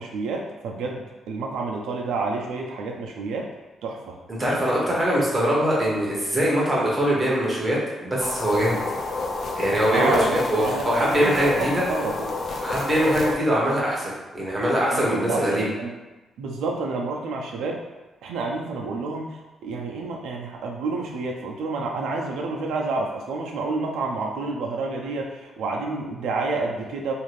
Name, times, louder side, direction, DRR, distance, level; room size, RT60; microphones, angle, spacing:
voice 1, 0.0-3.5 3.8-4.7 9.9-12.1 14.9-15.9 16.4-17.8 18.2-27.1, right 3 dB, 85° right, 0 dB, 0.4 m, -29 dB
voice 2, 4.3-8.8 9.6-11.7 12.6-15.7, equal, 10° right, -5 dB, 0.7 m, -22 dB
sound 1, 8.2-13.4, left 3 dB, 40° left, 0.3 m, -30 dB
2.6 x 2.4 x 3.1 m, 1.1 s
cardioid pair, 175°, 0 cm